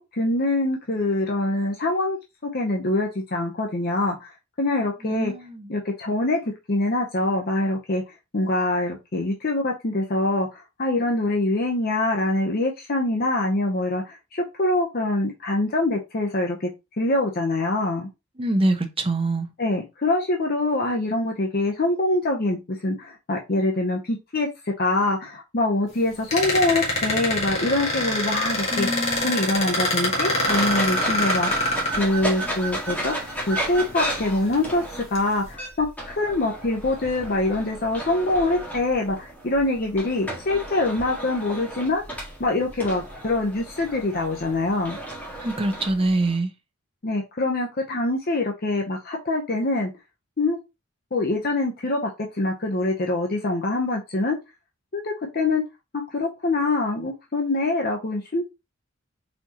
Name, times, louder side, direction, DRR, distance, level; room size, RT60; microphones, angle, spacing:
voice 1, 0.1-2.2 2.4-4.3 4.6-5.3 5.7-6.4 6.7-8.0 8.3-16.7 17.0-18.1 19.6-24.5 24.8-28.9 29.2-33.1 33.5-34.8 35.1-42.0 42.4-45.0 47.0-49.9 50.4-50.6 51.1-54.4 54.9-55.6 55.9-58.4, left 2 dB, 50° left, 0.8 m, -24 dB
voice 2, 5.0-5.7 18.4-19.5 28.7-29.4 45.4-46.5, right 2 dB, 30° right, 0.8 m, -25 dB
sound 1, 26.3-32.5 33.5-33.6 34.1-34.6 35.1-35.4, left 1 dB, 35° left, 1.7 m, -25 dB
sound 2, 30.4-46.4, right 1 dB, 10° left, 1.8 m, -33 dB
4.3 x 4.2 x 2.9 m
head